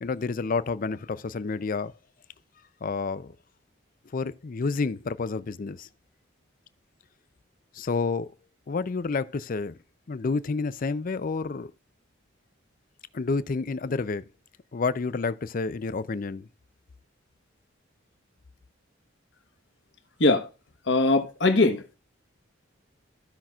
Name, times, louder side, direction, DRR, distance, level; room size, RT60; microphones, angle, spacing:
voice 1, 0.0-1.9 2.8-3.3 4.1-5.9 7.7-8.3 8.7-9.8 10.1-11.7 13.1-14.2 14.7-16.5, left 4 dB, 45° left, 0.4 m, -29 dB
voice 2, 20.9-22.0, left 2 dB, 65° left, 1.2 m, -21 dB
15.0 x 5.8 x 2.4 m
head